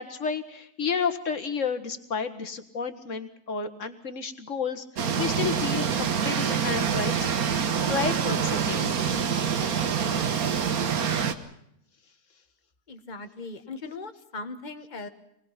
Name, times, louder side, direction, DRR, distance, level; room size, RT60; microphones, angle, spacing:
voice 1, 0.0-7.3 7.9-9.0 9.4-9.5, left 5 dB, 60° left, 10 dB, 1.9 m, -31 dB
sound 1, 5.0-11.3, right 7 dB, 80° right, 1.7 m, -26 dB
voice 2, 12.9-15.1, left 3 dB, 30° left, 7 dB, 1.6 m, -39 dB
25.5 x 20.0 x 5.9 m, 0.77 s
omnidirectional pair, 1.5 m